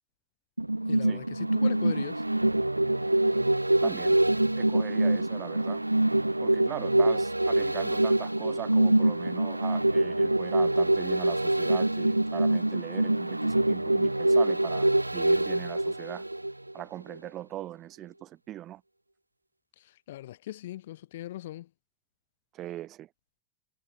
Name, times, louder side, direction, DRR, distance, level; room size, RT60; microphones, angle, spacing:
sound 1, 0.6-16.8 17.2-17.3, right 1 dB, 85° right, 0.5 m, -25 dB
voice 1, 0.9-2.2 19.8-21.7, left 14 dB, 55° left, 3.4 m, -39 dB
voice 2, 3.8-4.2 4.6-5.8 6.4-16.2 16.7-18.8 22.5-23.1, right 13 dB, 35° right, 4.4 m, -39 dB
figure-of-eight pair, 90°, 0 cm